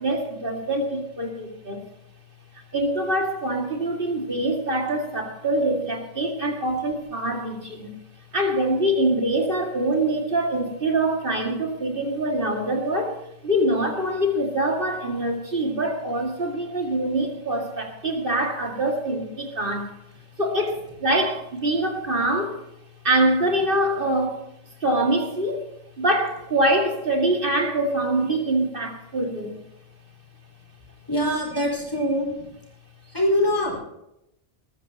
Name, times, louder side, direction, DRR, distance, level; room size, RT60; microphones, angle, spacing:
voice 1, 0.0-1.9 2.7-8.0 8.3-13.2 13.4-19.9 20.4-22.6 23.0-24.4 24.8-25.7 26.0-29.6, right 1 dB, 60° right, 1 dB, 2.5 m, -24 dB
voice 2, 31.1-32.3 33.1-33.8, equal, 25° left, -3 dB, 5.1 m, -23 dB
21.0 x 13.5 x 3.0 m, 0.85 s
omnidirectional pair, 1.0 m